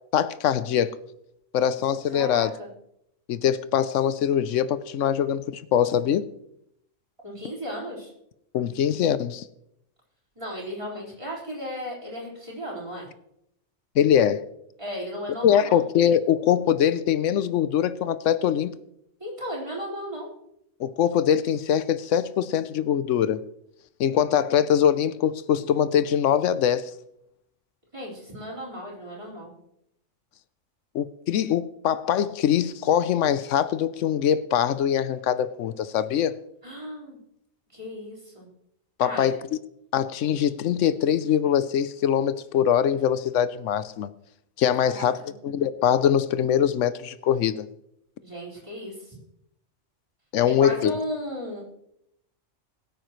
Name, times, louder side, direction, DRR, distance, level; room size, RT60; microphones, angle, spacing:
voice 1, 0.1-1.0 1.5-2.5 3.3-6.3 8.5-9.4 14.0-14.4 15.4-18.7 20.8-23.4 24.0-26.9 30.9-36.4 39.0-39.4 39.9-44.1 44.6-47.7 50.3-51.0, left 9 dB, 85° left, 1.0 m, -23 dB
voice 2, 2.1-2.7 7.2-8.1 10.4-13.0 14.8-15.8 19.2-20.3 27.9-29.5 36.6-37.2 37.7-38.5 39.0-39.3 44.8-45.1 48.2-48.9 50.4-51.7, equal, 25° right, 4.5 m, -35 dB
21.5 x 8.9 x 3.1 m
omnidirectional pair, 1.2 m